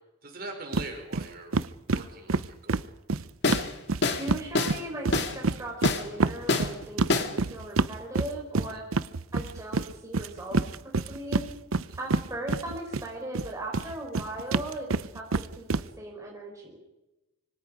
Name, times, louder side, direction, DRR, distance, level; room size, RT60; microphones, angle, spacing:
voice 1, 0.2-1.5 1.9-2.9 8.7-8.8 11.9-12.0, right 2 dB, 45° right, 3 dB, 5.7 m, -42 dB
sound 1, 0.7-1.3 1.5-4.4 4.7-13.1 13.3-15.8, right 3 dB, 85° right, 0.7 m, -27 dB
sound 2, 3.4-3.7 4.0-4.3 4.6-4.8 5.1-5.3 5.8-6.0 6.5-6.7 7.1-7.3, left 3 dB, 55° left, 2.1 m, -25 dB
voice 2, 4.1-8.8 9.3-10.6 11.1-11.5 12.0-14.9 15.1-15.6 16.0-16.8, right 1 dB, 15° right, -1 dB, 4.8 m, -38 dB
26.0 x 25.0 x 5.1 m, 1.0 s
head